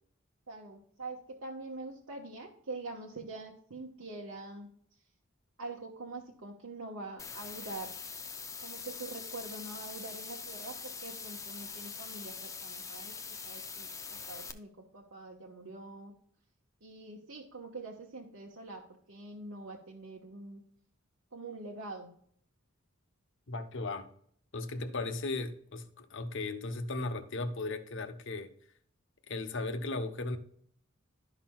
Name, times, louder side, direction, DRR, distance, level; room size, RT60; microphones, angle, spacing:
voice 1, 0.5-4.7 5.6-7.9 8.6-13.1 13.4-16.1 16.8-18.8 19.1-20.6 21.3-22.1, right 2 dB, 85° right, -3 dB, 1.2 m, -44 dB
sound 1, 7.2-14.5, left 5 dB, 15° left, 0.5 m, -43 dB
voice 2, 23.5-24.1 24.5-28.5 29.3-30.4, left 2 dB, 60° left, 8 dB, 0.9 m, -36 dB
12.0 x 5.9 x 2.3 m, 0.62 s
head